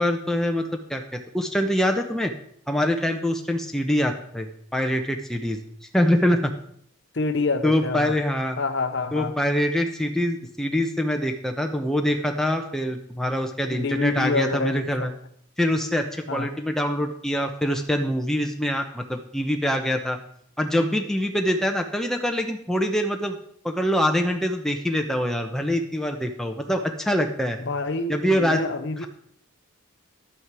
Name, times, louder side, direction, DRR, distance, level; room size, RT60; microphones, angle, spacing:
voice 1, 0.0-2.3 2.7-5.6 5.9-6.5 7.6-8.6 9.1-15.1 15.6-20.2 20.6-23.4 23.6-27.6 28.1-28.6, equal, ahead, 3 dB, 0.8 m, -24 dB
voice 2, 7.1-8.2 8.6-9.3 13.7-15.1 16.3-16.5 27.6-29.1, left 3 dB, 55° left, 9 dB, 0.8 m, -27 dB
11.0 x 8.6 x 4.8 m, 0.67 s
head